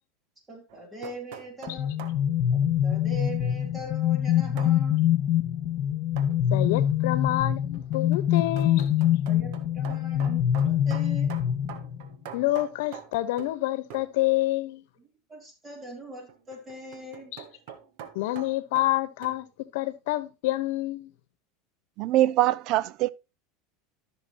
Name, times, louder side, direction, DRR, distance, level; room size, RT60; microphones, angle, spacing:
voice 1, 0.5-2.1 2.5-5.0 9.2-11.3 15.0-17.6, right 1 dB, 20° right, 3.2 m, -42 dB
sound 1, 0.7-2.3 4.6-4.8 6.2-6.4 7.7-13.6 13.9-14.2 16.3-19.4, right 9 dB, 70° right, 1.4 m, -45 dB
sound 2, 1.7-12.1, left 10 dB, 50° left, 1.6 m, -25 dB
voice 2, 6.5-8.9 12.3-14.8 17.3-17.4 18.1-19.4 19.7-21.1, left 16 dB, 75° left, 1.0 m, -28 dB
voice 3, 22.0-23.1, right 15 dB, 55° right, 0.4 m, -23 dB
13.5 x 6.3 x 2.9 m
supercardioid pair, 125°, 0 cm